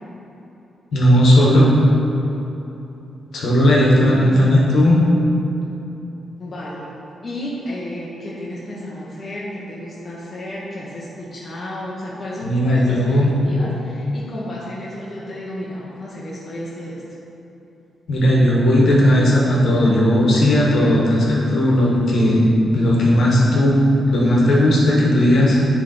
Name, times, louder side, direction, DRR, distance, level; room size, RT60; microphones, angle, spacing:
voice 1, 0.9-1.7 3.3-5.0 12.4-13.3 18.1-23.7 24.1-25.6, left 1 dB, 60° left, -4 dB, 1.4 m, -15 dB
voice 2, 4.1-4.5 6.4-6.9 7.2-17.0, left 1 dB, 25° left, -7 dB, 1.0 m, -32 dB
9.7 x 3.5 x 4.1 m, 3.0 s
wide cardioid pair, 145°, 0 cm